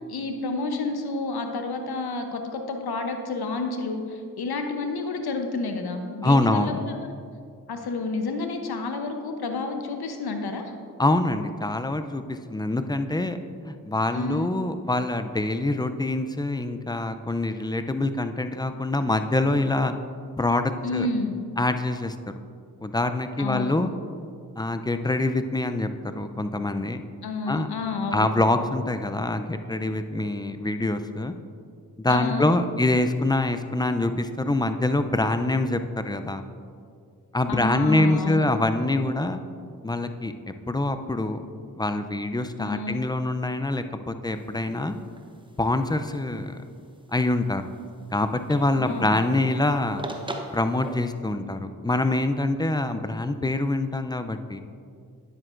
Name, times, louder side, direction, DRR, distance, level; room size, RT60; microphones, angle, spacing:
voice 1, 0.1-6.9 7.7-10.6 14.1-14.5 20.8-21.4 23.4-23.7 27.2-28.3 32.1-32.5 37.5-38.5 42.6-43.0 48.8-49.2, left 3 dB, 70° left, 5 dB, 0.9 m, -30 dB
voice 2, 6.2-6.8 11.0-13.4 13.6-19.9 20.4-21.1 21.6-22.1 22.8-23.9 24.6-25.9 26.1-27.0 27.5-27.7 28.1-31.3 32.0-36.4 37.3-39.4 39.8-40.3 40.7-41.4 41.8-45.0 45.6-46.6 47.1-47.6 48.1-50.0 50.5-54.6, left 2 dB, 10° left, 9 dB, 0.4 m, -25 dB
sound 1, 44.2-51.1, right 1 dB, 10° right, 0.8 m, -43 dB
9.8 x 7.7 x 2.5 m, 2.2 s
supercardioid pair, 40°, 39 cm